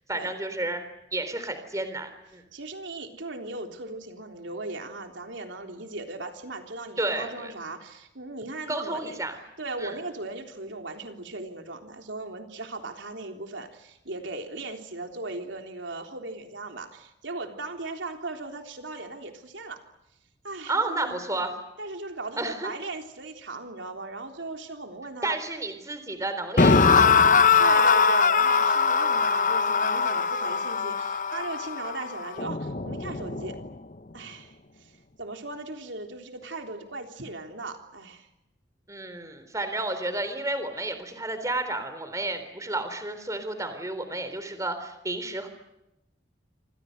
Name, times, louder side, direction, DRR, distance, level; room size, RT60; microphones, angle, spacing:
voice 1, 0.1-0.8 1.1-2.4 7.0-7.5 8.7-9.4 9.8-9.9 20.7-21.5 22.4-22.7 25.2-27.3 38.9-45.5, right 2 dB, 15° right, 9 dB, 3.7 m, -31 dB
voice 2, 2.5-9.2 9.6-19.8 20.4-21.1 21.8-25.3 27.6-33.6 34.1-38.3, right 2 dB, 80° right, 4 dB, 3.5 m, -38 dB
sound 1, 26.6-33.7, left 5 dB, 45° left, 0.9 m, -21 dB
27.5 x 26.5 x 6.7 m, 0.87 s
head